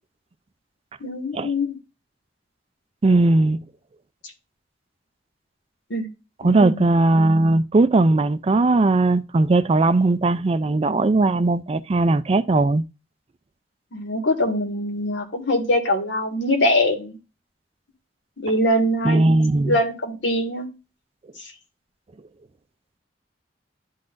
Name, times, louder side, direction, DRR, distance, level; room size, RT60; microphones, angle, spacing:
voice 1, 1.0-1.8 5.9-6.1 6.4-6.9 13.9-17.2 18.4-19.4 19.7-20.7 21.4-21.5, left 1 dB, 80° left, 1.8 m, -23 dB
voice 2, 3.0-3.6 6.4-12.8 19.0-19.8, right 2 dB, 35° right, 0.4 m, -18 dB
11.5 x 4.0 x 2.5 m
head